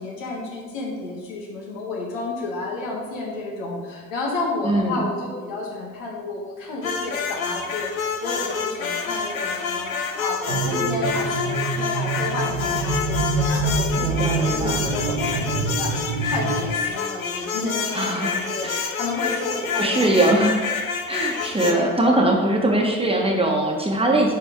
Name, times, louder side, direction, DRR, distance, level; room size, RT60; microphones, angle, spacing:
voice 1, 0.0-7.9 8.2-20.1 21.6-22.0, left 2 dB, 70° left, -2 dB, 1.7 m, -31 dB
voice 2, 4.6-5.1 14.0-14.8 17.9-19.0 19.8-20.7 21.1-24.3, right 1 dB, 15° right, 0 dB, 1.4 m, -21 dB
sound 1, 6.8-21.7, left 5 dB, 85° left, 0.6 m, -28 dB
sound 2, 10.5-16.7, right 3 dB, 70° right, 1.0 m, -26 dB
9.4 x 5.0 x 3.7 m, 1.5 s
figure-of-eight pair, 50°, 40 cm